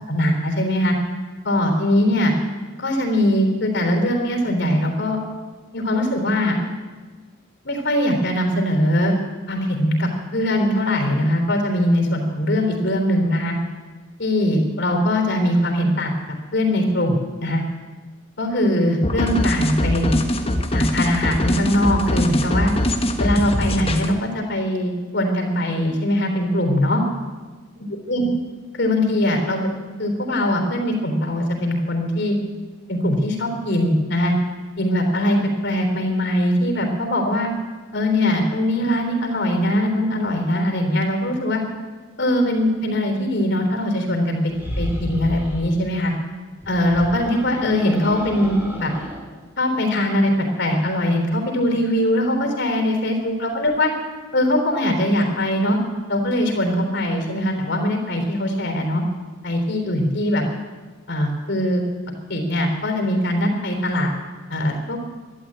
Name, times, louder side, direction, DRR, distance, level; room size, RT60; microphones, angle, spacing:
voice 1, 0.1-1.0 1.4-2.3 2.8-5.2 5.7-6.6 7.6-9.1 9.5-13.6 14.2-16.1 16.5-17.6 18.4-20.2 20.7-22.7 23.2-27.0 28.1-28.3 28.7-29.7 30.0-32.4 32.9-34.3 34.8-35.4 35.6-37.5 37.9-41.6 42.2-46.1 46.7-48.9 49.6-50.3 50.6-53.9 54.3-55.8 56.1-59.0 59.4-60.4 61.1-61.8 62.3-64.1 64.5-65.0, left 1 dB, 55° left, 3 dB, 3.6 m, -21 dB
sound 1, 19.0-24.1, left 1 dB, 30° left, 1.2 m, -22 dB
sound 2, 44.5-45.7 46.6-49.2, equal, 10° right, 2.5 m, -32 dB
12.5 x 12.0 x 8.8 m, 1.4 s
head